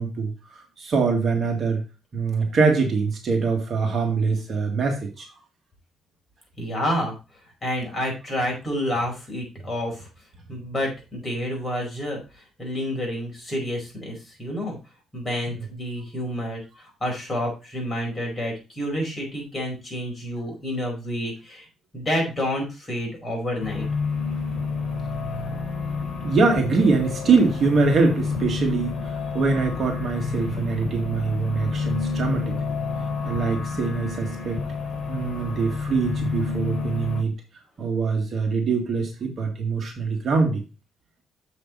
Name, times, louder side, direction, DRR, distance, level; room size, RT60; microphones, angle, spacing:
voice 1, 0.0-1.8 2.1-5.3 26.2-28.9 29.3-32.8 33.2-34.6 35.1-37.3 37.8-40.6, right 4 dB, 45° right, 2 dB, 2.0 m, -23 dB
voice 2, 6.6-7.2 7.6-10.1 10.5-14.8 15.1-21.7 21.9-23.9, equal, 20° left, -1 dB, 4.9 m, -29 dB
sound 1, 23.6-37.2, left 4 dB, 45° left, 3.6 m, -29 dB
7.4 x 6.5 x 3.9 m, 0.29 s
cardioid pair, 125°, 0 cm